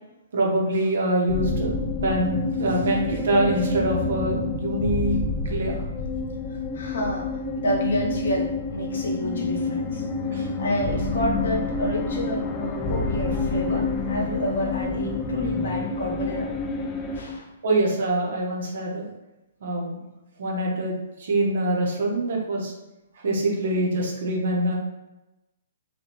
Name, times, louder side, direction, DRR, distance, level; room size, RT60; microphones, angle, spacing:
voice 1, 0.3-1.7 2.0-5.2 5.5-5.8 10.3-10.4 17.6-19.1 19.6-20.0 20.4-20.9 21.2-22.7 23.2-24.7, right 1 dB, 60° right, 0 dB, 0.9 m, -24 dB
sound 1, 1.3-17.2, left 3 dB, 15° left, 0.5 m, -28 dB
voice 2, 6.7-7.3 7.6-10.0 10.6-16.5 17.1-17.5, equal, 65° left, -1 dB, 1.0 m, -29 dB
3.3 x 3.0 x 2.9 m, 0.99 s
figure-of-eight pair, 120°, 0 cm